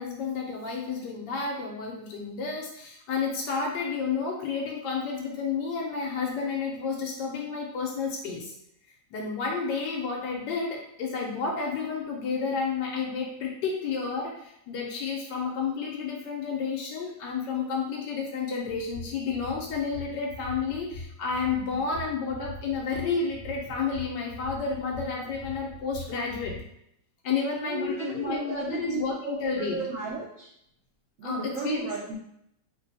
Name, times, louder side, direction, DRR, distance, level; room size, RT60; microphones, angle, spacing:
voice 1, 0.0-8.5 9.1-26.6 27.2-29.8 31.2-31.9, left 5 dB, 80° left, -1 dB, 1.2 m, -31 dB
sound 1, 18.7-26.6, left 1 dB, 40° right, 0.8 m, -42 dB
voice 2, 27.6-30.5 31.2-32.2, right 4 dB, 70° right, -3 dB, 0.7 m, -34 dB
3.0 x 2.2 x 3.9 m, 0.75 s
omnidirectional pair, 1.9 m